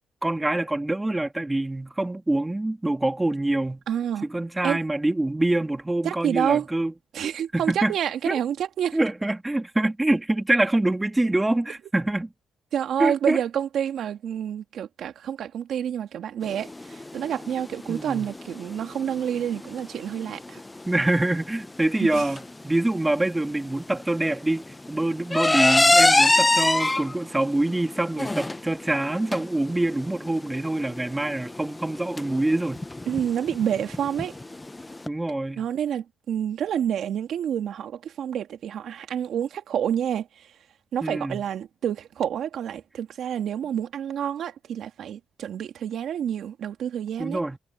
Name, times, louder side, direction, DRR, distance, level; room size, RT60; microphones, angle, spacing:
voice 1, 0.2-3.8 4.2-6.9 7.5-7.9 8.3-8.4 8.9-12.3 13.0-13.4 17.9-18.3 20.9-32.8 35.1-35.7 41.0-41.4 47.2-47.6, right 1 dB, 10° right, 2.2 m, -25 dB
voice 2, 3.9-4.3 4.6-4.8 6.0-6.7 7.1-9.0 12.7-20.6 22.0-22.3 33.1-34.4 35.6-40.5 40.9-47.4, right 9 dB, 70° right, 2.1 m, -28 dB
sound 1, 16.4-35.1, left 2 dB, 15° left, 0.8 m, -26 dB
cardioid pair, 90°, 0 cm